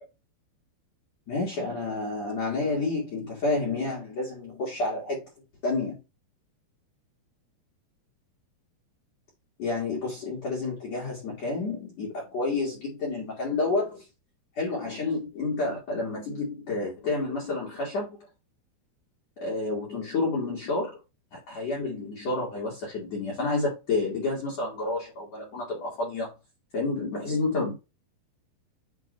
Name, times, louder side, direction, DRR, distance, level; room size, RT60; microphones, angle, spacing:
voice 1, 1.3-5.3 5.6-6.0 9.6-14.1 14.6-18.1 19.4-21.0 21.3-26.3 26.7-27.7, left 3 dB, 50° left, 2.5 m, -29 dB
8.5 x 3.0 x 3.9 m
omnidirectional pair, 4.8 m